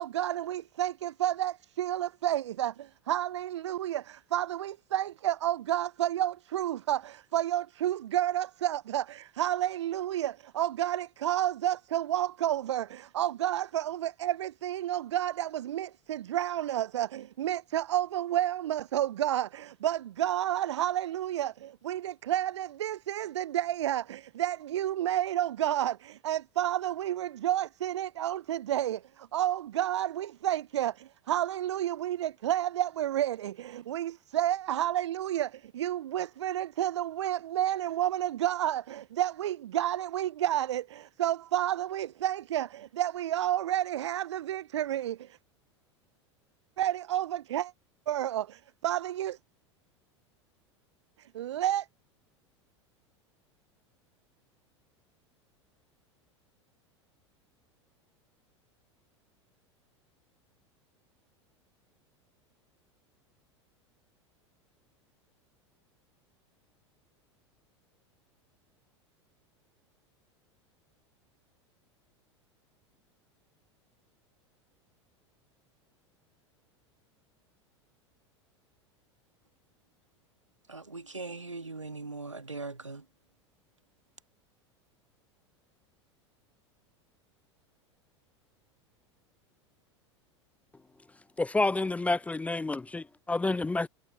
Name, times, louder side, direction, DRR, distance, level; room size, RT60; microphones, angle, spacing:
voice 1, 0.0-45.4 46.8-47.7 48.1-49.4 51.2-51.9, right 12 dB, 70° right, 0.6 m, -30 dB
voice 2, 80.7-83.0, right 3 dB, 90° right, 1.8 m, -40 dB
voice 3, 91.4-93.9, left 2 dB, 10° left, 0.5 m, -29 dB
figure-of-eight pair, 85°, 15 cm